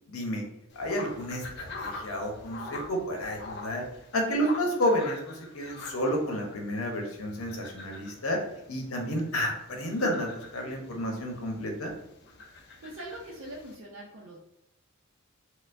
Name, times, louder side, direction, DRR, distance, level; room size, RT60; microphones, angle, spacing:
voice 1, 0.1-0.4 0.7-3.8 4.1-8.4 8.7-11.9, equal, 80° left, 1 dB, 0.8 m, -30 dB
sound 1, 0.7-13.8, left 3 dB, 50° left, 0.5 m, -45 dB
voice 2, 12.6-14.4, right 1 dB, 65° right, -4 dB, 0.6 m, -43 dB
4.3 x 2.2 x 2.5 m, 0.83 s
head